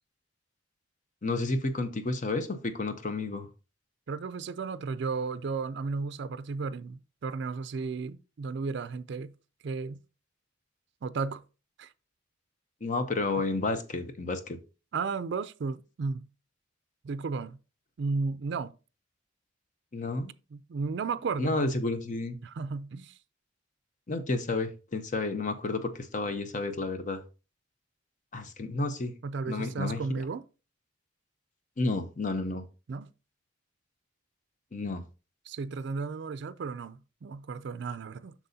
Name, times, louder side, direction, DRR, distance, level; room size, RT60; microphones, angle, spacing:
voice 1, 1.2-3.5 12.8-14.6 19.9-20.3 21.4-22.4 24.1-27.2 28.3-29.1 29.5-30.0 31.8-32.6 34.7-35.0, left 2 dB, 40° left, 0.7 m, -31 dB
voice 2, 4.1-9.3 9.6-10.0 11.0-11.4 11.8-11.9 14.9-16.3 17.0-17.6 18.0-18.7 20.5-21.7 22.4-23.2 29.2-30.4 32.9-33.1 35.5-38.3, right 4 dB, 60° right, 0.4 m, -34 dB
7.8 x 6.1 x 2.7 m
head